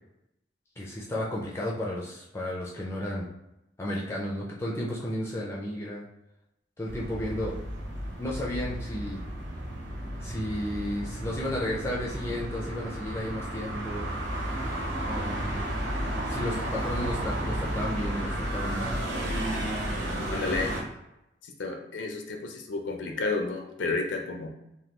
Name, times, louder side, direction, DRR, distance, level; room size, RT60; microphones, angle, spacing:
voice 1, 0.8-3.3 3.8-6.0 6.8-7.5 8.2-9.2 10.2-14.1 15.1-15.6 16.3-19.0, left 1 dB, 15° left, -4 dB, 0.4 m, -33 dB
sound 1, 6.8-20.8, right 1 dB, 80° right, 0.8 m, -33 dB
voice 2, 20.3-20.7 21.4-24.5, left 3 dB, 85° left, 3 dB, 0.5 m, -31 dB
3.2 x 2.2 x 2.9 m, 0.89 s
head